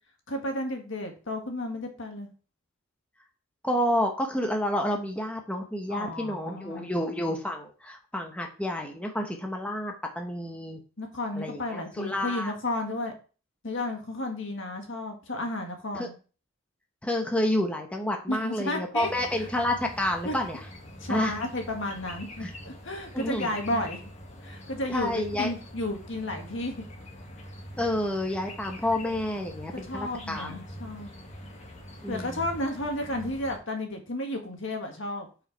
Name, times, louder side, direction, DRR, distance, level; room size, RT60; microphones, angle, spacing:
voice 1, 0.3-2.3 5.9-6.9 11.0-13.1 13.6-16.1 18.3-19.5 20.2-20.3 21.0-24.0 24.4-26.8 29.7-31.1 32.1-35.3, left 1 dB, 65° left, 3 dB, 1.7 m, -33 dB
voice 2, 3.6-10.8 11.3-12.5 15.9-16.1 17.0-20.6 21.1-21.3 22.4-22.5 23.1-23.8 24.9-25.5 27.8-30.6 32.0-32.5, left 1 dB, 5° left, 2 dB, 1.0 m, -29 dB
sound 1, 19.0-33.6, equal, 35° left, 1.6 m, -44 dB
7.2 x 5.0 x 4.6 m, 0.36 s
head